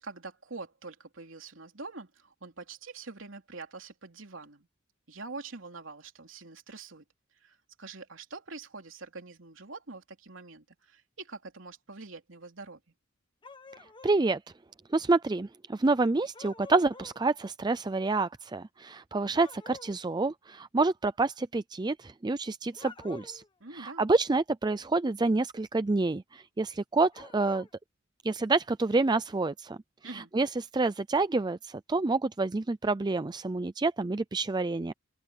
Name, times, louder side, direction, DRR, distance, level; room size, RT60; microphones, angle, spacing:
voice 1, 0.0-4.7 5.1-7.0 7.3-12.8 23.6-24.1 30.0-30.3, right 3 dB, 80° right, 3.2 m, -45 dB
sound 1, 13.4-14.2 16.3-17.2 19.3-20.0 22.7-23.5 27.1-27.7, left 3 dB, 25° left, 1.3 m, -48 dB
voice 2, 14.0-14.4 14.9-23.4 23.7-27.7 28.2-29.8 30.1-34.9, right 3 dB, 20° right, 0.4 m, -28 dB
open air
head